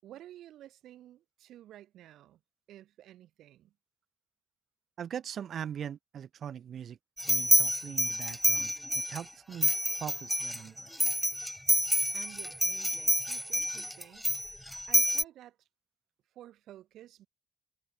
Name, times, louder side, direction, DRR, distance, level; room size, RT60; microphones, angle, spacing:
voice 1, 0.0-2.4 2.7-3.7 12.1-15.7 16.3-17.3, right 13 dB, 80° right, 7.7 m, -52 dB
voice 2, 5.0-7.0 7.3-8.7 9.1-9.7 10.0-10.9, right 9 dB, 60° right, 2.2 m, -41 dB
sound 1, 7.2-9.2 9.6-15.2, equal, ahead, 0.8 m, -28 dB
cardioid pair, 90°, 0 cm